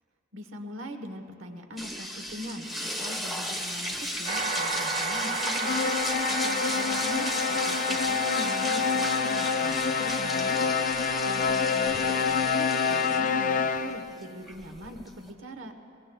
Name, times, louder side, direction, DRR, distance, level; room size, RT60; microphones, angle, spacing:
voice 1, 0.3-5.8 6.3-10.7 11.2-15.7, equal, 70° right, 6 dB, 1.1 m, -41 dB
sound 1, 1.8-15.3, left 1 dB, ahead, 1.1 m, -35 dB
sound 2, 4.3-12.1, right 4 dB, 40° right, 1.2 m, -35 dB
sound 3, 5.6-14.2, left 6 dB, 40° left, 0.4 m, -27 dB
23.5 x 22.5 x 2.3 m, 2.8 s
head